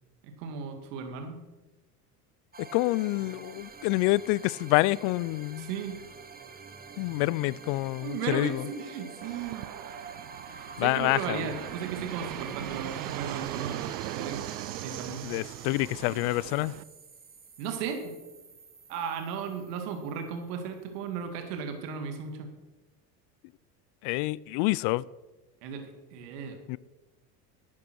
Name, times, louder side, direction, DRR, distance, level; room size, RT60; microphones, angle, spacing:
voice 1, 0.4-1.4 5.6-6.0 8.0-9.7 10.8-14.4 14.8-15.3 17.6-18.2 18.9-22.5 25.6-26.6, right 6 dB, 70° right, 2.2 m, -35 dB
sound 1, 2.5-21.0, right 5 dB, 20° right, 1.2 m, -48 dB
voice 2, 2.6-5.7 7.0-8.6 10.8-11.4 15.2-16.7 24.0-25.0 26.7-26.8, left 20 dB, 55° left, 0.6 m, -27 dB
Fixed-wing aircraft airplane, 9.2-16.8, right 15 dB, 85° right, 0.7 m, -39 dB
12.0 x 8.6 x 6.2 m
hypercardioid pair, 80°, 50 cm